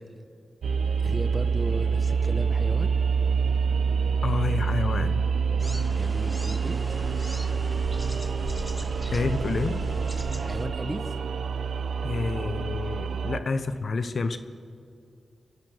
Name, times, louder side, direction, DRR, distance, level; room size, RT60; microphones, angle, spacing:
sound 1, 0.6-13.4, right 5 dB, 90° right, 0.7 m, -27 dB
voice 1, 1.0-2.9 5.9-7.0 10.4-11.2, right 1 dB, 15° right, 9 dB, 1.2 m, -35 dB
voice 2, 4.2-5.2 9.1-9.8 12.0-14.4, left 4 dB, 60° left, 10 dB, 1.1 m, -28 dB
sound 2, 5.6-10.7, equal, ahead, 1.4 m, -37 dB
sound 3, 9.3-12.1, right 2 dB, 70° right, 3.6 m, -50 dB
28.0 x 11.5 x 7.9 m, 2.3 s
cardioid pair, 75°, 0 cm